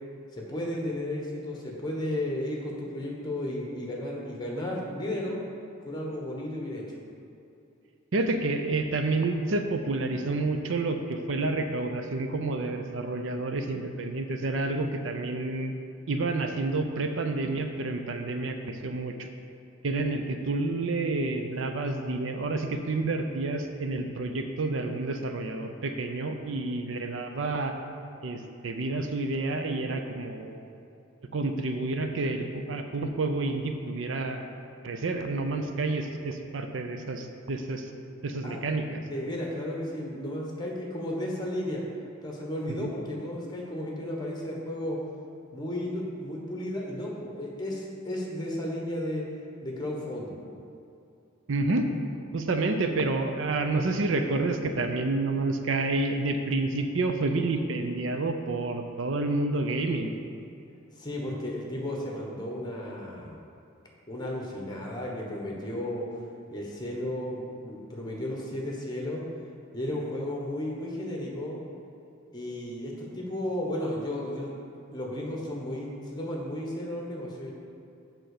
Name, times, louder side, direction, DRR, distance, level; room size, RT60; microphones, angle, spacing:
voice 1, 0.3-5.4 5.8-6.8 38.4-38.6 39.1-41.8 42.2-45.0 45.5-49.2 49.6-50.4 61.0-63.3 64.1-66.0 66.5-69.2 69.7-71.6 72.3-74.5 74.9-77.5, left 1 dB, 20° left, -2 dB, 1.3 m, -34 dB
voice 2, 8.1-15.8 16.1-19.3 19.8-27.7 28.2-30.8 31.3-34.5 34.8-37.9 38.2-39.0 42.7-42.9 51.5-51.9 52.3-60.1, right 2 dB, 65° right, 6 dB, 0.6 m, -29 dB
7.8 x 4.5 x 6.6 m, 2.6 s
head